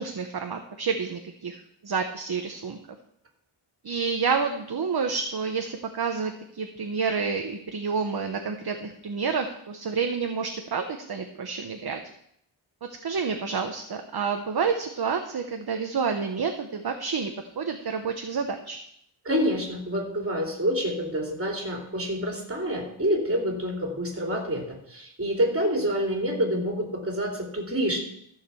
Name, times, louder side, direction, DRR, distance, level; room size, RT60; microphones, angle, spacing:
voice 1, 0.0-1.6 1.8-2.8 3.8-12.0 13.0-17.3 17.6-18.8, right 5 dB, 50° right, 5 dB, 0.9 m, -29 dB
voice 2, 19.2-24.6 24.9-28.0, equal, 25° right, -1 dB, 3.0 m, -27 dB
14.0 x 5.0 x 7.0 m, 0.72 s
wide cardioid pair, 125°, 50 cm